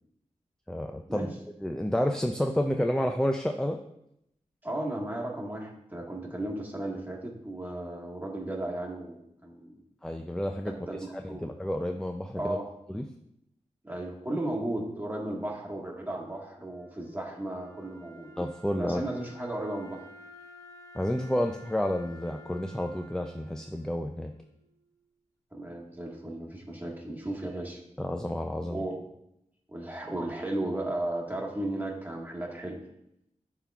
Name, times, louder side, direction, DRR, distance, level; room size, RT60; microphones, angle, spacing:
voice 1, 0.7-1.3 1.6-3.8 10.0-10.7 11.4-12.6 12.9-13.0 18.4-19.0 20.9-24.3 28.0-28.8, left 1 dB, 5° left, 4 dB, 0.4 m, -30 dB
voice 2, 4.6-9.8 10.7-11.4 12.4-12.6 13.8-18.3 18.8-20.0 25.5-27.8 28.7-29.0 29.7-32.8, right 1 dB, 15° right, -1 dB, 1.5 m, -35 dB
Wind instrument woodwind instrument, 16.0-25.1, equal, 25° left, 0.9 m, -53 dB
11.0 x 3.8 x 2.4 m, 0.79 s
wide cardioid pair, 60°, 13 cm